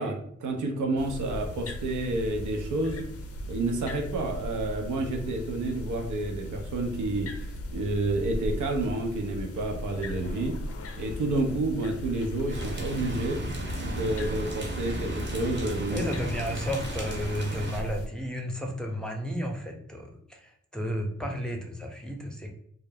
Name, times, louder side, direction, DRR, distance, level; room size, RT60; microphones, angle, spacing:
voice 1, 0.0-3.0 3.5-7.4 7.7-10.6 10.9-13.4 13.8-16.0, right 2 dB, 85° right, 2 dB, 0.5 m, -29 dB
sound 1, 1.0-18.1, left 1 dB, 55° left, 0.4 m, -37 dB
sound 2, 12.5-17.8, right 1 dB, 40° right, 0.7 m, -35 dB
voice 2, 15.9-22.5, equal, ahead, 1 dB, 0.6 m, -33 dB
2.2 x 2.0 x 3.4 m, 0.65 s
cardioid pair, 45°, 29 cm